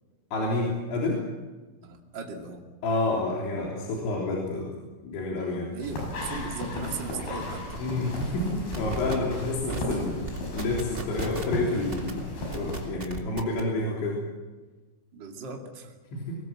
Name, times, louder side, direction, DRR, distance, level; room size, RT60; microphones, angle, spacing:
voice 1, 0.3-1.2 2.8-4.7 5.0-5.7 7.8-10.2 10.5-12.2 12.5-14.2 16.1-16.4, left 2 dB, 75° left, -3 dB, 5.8 m, -29 dB
voice 2, 1.8-2.6 5.7-7.6 15.1-15.9, right 4 dB, 35° right, 2 dB, 2.2 m, -38 dB
sound 1, 5.8-12.9, left 1 dB, 55° left, 8.3 m, -35 dB
sound 2, 7.1-7.2 7.5-7.8 8.2-8.4 8.7-9.1 9.7-9.9 10.3-11.6 11.9-12.1 12.5-13.6, right 3 dB, 85° right, 0.5 m, -35 dB
24.5 x 21.0 x 7.6 m, 1.3 s
omnidirectional pair, 5.4 m